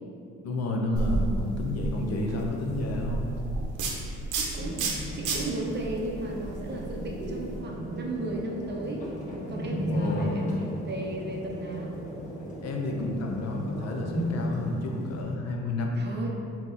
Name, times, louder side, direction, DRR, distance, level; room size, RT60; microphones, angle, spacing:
voice 1, 0.4-3.3 9.9-10.5 12.6-16.0, left 2 dB, 55° left, 1 dB, 0.6 m, -30 dB
sound 1, 1.0-7.6, right 2 dB, 85° right, 0.7 m, -32 dB
voice 2, 4.3-4.8 5.1-9.0 9.5-11.9 16.0-16.3, right 1 dB, 35° right, -1 dB, 0.7 m, -35 dB
sound 2, 4.6-15.2, equal, 25° left, 1.4 m, -35 dB
sound 3, 8.1-14.5, equal, 10° right, 1.2 m, -44 dB
3.7 x 2.9 x 3.8 m, 2.6 s
cardioid pair, 90°, 30 cm